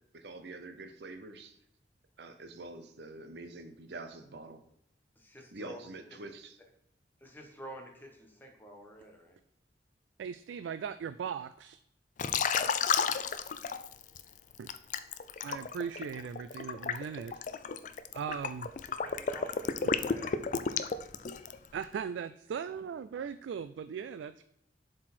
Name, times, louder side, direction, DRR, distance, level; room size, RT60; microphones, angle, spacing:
voice 1, 0.1-1.6 2.2-4.6 5.5-6.5, right 2 dB, 65° right, 7 dB, 0.7 m, -46 dB
voice 2, 5.2-5.8 7.2-9.4 19.0-20.4, equal, 10° left, 1 dB, 1.3 m, -49 dB
voice 3, 10.2-11.8 14.6-14.7 15.4-17.4 18.1-18.7 21.7-24.4, right 7 dB, 90° right, 12 dB, 0.3 m, -38 dB
Liquid, 12.2-14.2 14.7-21.7, left 6 dB, 45° left, 0.4 m, -32 dB
7.4 x 4.5 x 4.3 m, 0.77 s
head